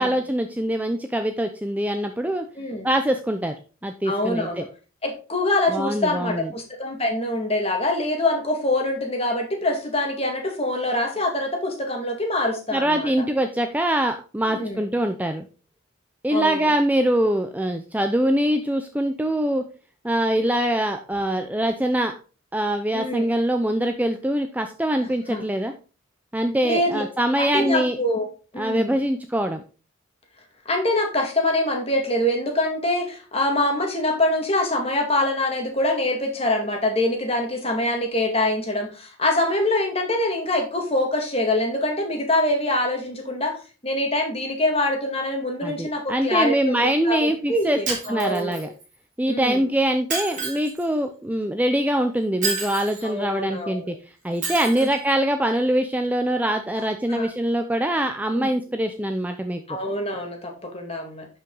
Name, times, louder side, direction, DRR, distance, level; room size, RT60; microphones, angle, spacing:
voice 1, 0.0-2.5 2.8-3.5 3.8-4.6 5.7-6.5 12.7-15.5 16.2-19.6 20.0-22.1 22.5-25.7 26.3-28.0 28.6-29.6 45.6-48.7 49.2-53.9 54.2-59.6, right 1 dB, 5° right, 6 dB, 0.5 m, -23 dB
voice 2, 2.6-2.9 4.1-4.7 5.0-13.1 14.5-14.8 16.3-16.7 22.9-23.3 25.0-25.5 26.6-27.0 27.4-28.3 28.5-29.0 30.7-43.6 43.8-48.7 49.3-49.7 53.0-53.9 54.7-54.9 57.1-57.3 58.3-58.5 59.7-61.3, left 1 dB, 30° left, 3 dB, 2.2 m, -24 dB
Shatter, 47.9-48.8 50.1-50.8 52.4-53.1 54.4-55.0, right 4 dB, 35° right, 3.8 m, -29 dB
11.5 x 5.5 x 3.9 m, 0.36 s
head